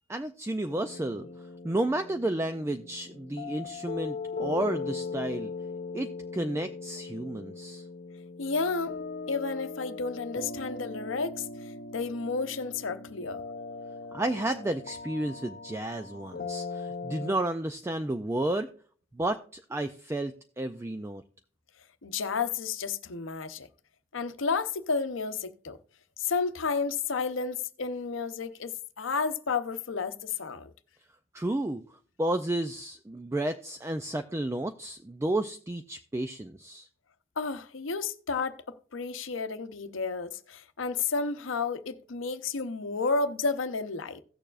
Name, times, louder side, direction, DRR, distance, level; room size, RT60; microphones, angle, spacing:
voice 1, 0.1-1.3 1.6-5.5 5.9-7.8 14.1-18.7 19.1-21.2 31.3-31.8 32.2-36.9, right 1 dB, 15° right, 0.3 m, -32 dB
sound 1, 0.7-17.4, left 4 dB, 45° left, 0.5 m, -39 dB
voice 2, 8.4-8.9 9.3-13.4 22.0-23.7 24.1-25.8 26.2-30.7 37.4-44.2, left 4 dB, 85° left, 0.8 m, -31 dB
16.5 x 6.9 x 2.4 m
head